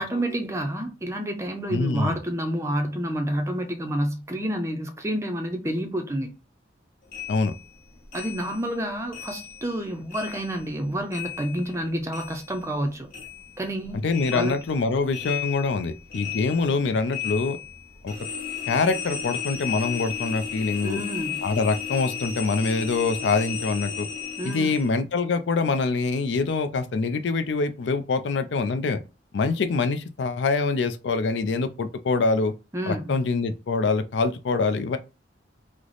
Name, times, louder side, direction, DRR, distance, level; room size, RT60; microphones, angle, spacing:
voice 1, 0.0-6.3 8.1-13.1 13.6-14.0 14.3-14.5 20.8-21.4 24.4-24.7 32.7-33.2, right 1 dB, 15° right, 0.4 m, -29 dB
voice 2, 1.7-2.2 7.3-7.5 14.0-17.6 18.0-18.1 18.7-21.0 21.4-24.1 24.4-29.0 29.3-32.5 32.9-35.0, left 4 dB, 75° left, 0.4 m, -25 dB
sound 1, 7.1-9.8 10.1-12.8 13.1-24.9, left 8 dB, 50° left, 1.0 m, -35 dB
3.2 x 2.0 x 3.8 m
head